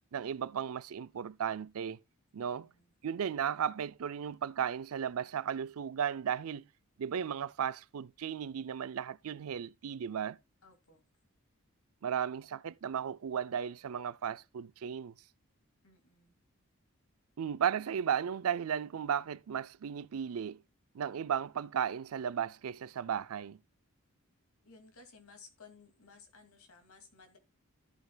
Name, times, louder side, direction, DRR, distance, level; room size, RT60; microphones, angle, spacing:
voice 1, 0.1-2.0 2.3-2.7 3.0-6.7 7.0-10.4 12.0-15.1 17.4-20.6 20.9-23.6, right 8 dB, 80° right, 0.4 m, -35 dB
voice 2, 2.6-2.9 10.6-11.0 15.8-16.3 24.6-27.4, left 4 dB, 80° left, 2.4 m, -57 dB
13.5 x 7.9 x 2.3 m
head